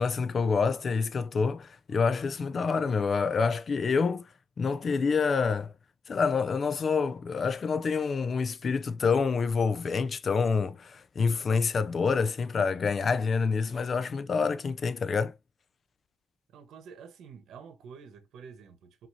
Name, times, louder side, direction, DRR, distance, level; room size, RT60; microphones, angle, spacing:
voice 1, 0.0-4.3 4.6-5.7 6.1-15.3, left 5 dB, 45° left, 0.5 m, -27 dB
voice 2, 16.5-19.1, right 6 dB, 75° right, 1.0 m, -48 dB
5.8 x 2.7 x 2.7 m
cardioid pair, 90°, 0 cm